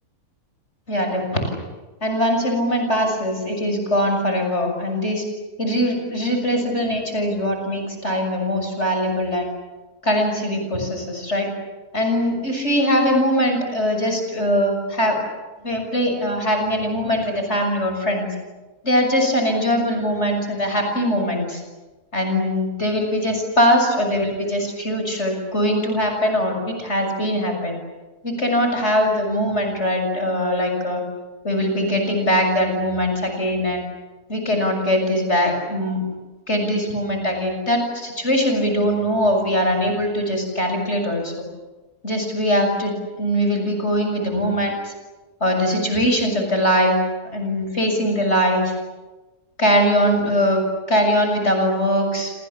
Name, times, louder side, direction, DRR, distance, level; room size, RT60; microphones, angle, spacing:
voice 1, 0.9-1.6 2.0-5.2 5.6-9.5 10.0-11.5 11.9-15.2 15.6-18.3 18.8-21.6 22.1-27.8 28.2-31.0 31.4-33.8 34.3-36.0 36.5-41.3 42.0-44.9 45.4-47.0 47.3-48.7 49.6-52.3, equal, 45° left, 3 dB, 7.0 m, -21 dB
29.5 x 27.5 x 7.4 m, 1.2 s
omnidirectional pair, 1.6 m